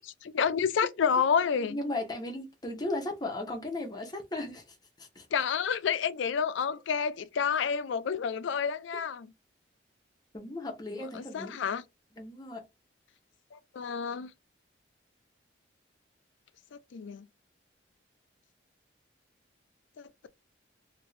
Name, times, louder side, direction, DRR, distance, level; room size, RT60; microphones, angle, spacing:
voice 1, 0.0-1.8 5.3-9.3 11.1-11.8 13.5-14.3 16.9-17.2 20.0-20.3, left 7 dB, 80° left, 0.4 m, -29 dB
voice 2, 1.6-5.3 10.3-11.6 12.2-12.6, left 2 dB, 20° left, 0.8 m, -36 dB
2.9 x 2.5 x 3.2 m
head